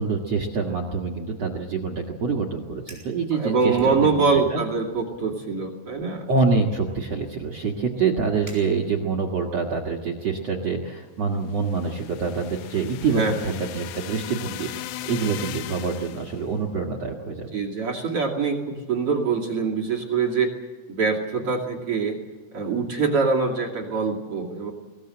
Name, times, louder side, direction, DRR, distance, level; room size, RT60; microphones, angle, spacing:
voice 1, 0.0-4.6 6.3-17.5, right 4 dB, 70° right, 4 dB, 1.5 m, -26 dB
Fire, 2.7-3.2 3.7-4.5 4.9-5.2 5.9-9.3, right 2 dB, 5° left, 6.2 m, -50 dB
voice 2, 3.3-6.2 13.1-13.6 17.5-20.5 20.9-22.2 22.5-24.7, right 4 dB, 35° right, -2 dB, 2.6 m, -24 dB
sound 1, 11.5-16.4, left 13 dB, 80° left, 3.2 m, -38 dB
22.5 x 19.0 x 7.8 m, 1.3 s
omnidirectional pair, 5.7 m